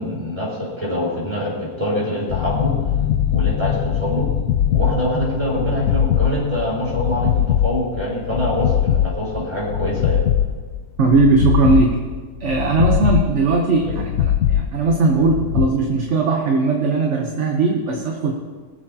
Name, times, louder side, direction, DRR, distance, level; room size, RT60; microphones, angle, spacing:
voice 1, 0.0-2.7 3.3-4.3 4.7-10.2, equal, 20° right, -7 dB, 4.2 m, -24 dB
sound 1, 2.3-15.7, left 10 dB, 70° left, 0.7 m, -21 dB
voice 2, 11.0-12.0 12.4-18.3, right 3 dB, 50° right, 1 dB, 1.1 m, -18 dB
22.5 x 7.6 x 2.8 m, 1.5 s
omnidirectional pair, 1.8 m